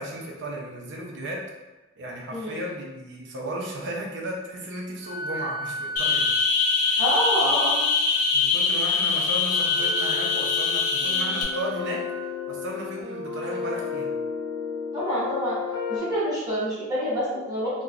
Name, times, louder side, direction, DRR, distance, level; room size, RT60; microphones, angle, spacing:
voice 1, 0.0-1.5 2.0-6.3 6.9-7.0 8.3-14.1, right 1 dB, 55° right, -1 dB, 0.5 m, -35 dB
Wind instrument woodwind instrument, 5.0-12.8, right 1 dB, 5° left, 0.6 m, -36 dB
sound 1, 6.0-11.4, left 4 dB, 80° left, 0.5 m, -23 dB
voice 2, 7.0-7.8 14.9-15.6 15.9-17.8, equal, 15° right, -10 dB, 1.0 m, -27 dB
sound 2, 9.7-16.0, left 6 dB, 40° left, 1.1 m, -33 dB
2.8 x 2.2 x 2.4 m, 1.1 s
head